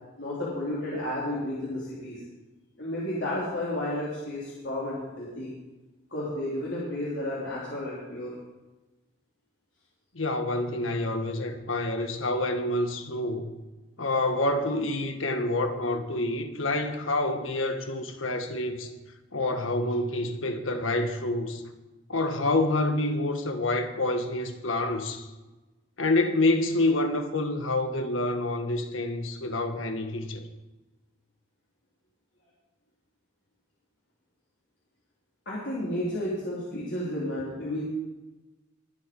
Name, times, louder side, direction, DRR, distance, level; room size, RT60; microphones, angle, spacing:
voice 1, 0.2-2.2 2.8-5.5 6.1-8.3 35.5-37.8, left 1 dB, 65° left, 3.7 m, -32 dB
voice 2, 10.1-13.5 14.0-18.9 19.3-21.6 22.1-25.3 26.0-30.5, left 2 dB, 90° left, 1.6 m, -27 dB
23.0 x 7.9 x 5.4 m
head